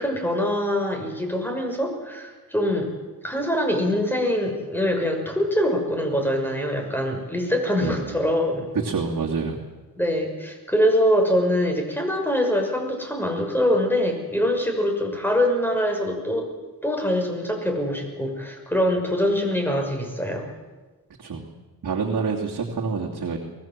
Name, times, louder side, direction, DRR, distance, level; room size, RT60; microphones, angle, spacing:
voice 1, 0.0-2.9 3.2-8.7 10.0-16.5 16.8-20.5, equal, 5° left, 3 dB, 6.2 m, -24 dB
voice 2, 7.8-8.2 8.7-9.6 21.2-21.5 21.8-23.4, right 5 dB, 60° right, -2 dB, 2.9 m, -27 dB
24.0 x 20.5 x 7.7 m, 1.3 s
cardioid pair, 85°, 38 cm